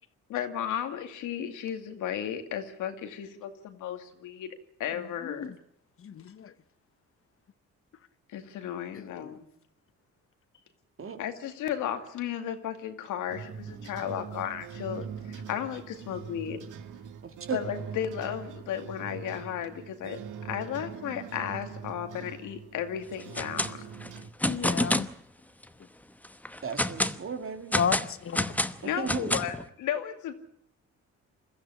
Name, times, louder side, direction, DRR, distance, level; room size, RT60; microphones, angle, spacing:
voice 1, 0.3-4.5 4.8-5.5 8.3-9.5 11.2-16.7 17.5-23.8 28.8-30.3, left 9 dB, 90° left, 2.3 m, -34 dB
voice 2, 6.0-6.5 8.9-9.3 24.4-25.1 27.7-28.5, left 7 dB, 45° left, 1.0 m, -32 dB
sound 1, 13.3-24.3, right 7 dB, 85° right, 1.8 m, -42 dB
voice 3, 17.2-17.6 26.6-27.8 28.8-29.4, right 6 dB, 45° right, 2.6 m, -35 dB
sound 2, 23.2-23.7 24.0-25.1 25.6-25.7 26.2-27.2 27.7-29.6, left 1 dB, 5° left, 0.9 m, -28 dB
22.0 x 14.5 x 9.7 m
cardioid pair, 90°, 30 cm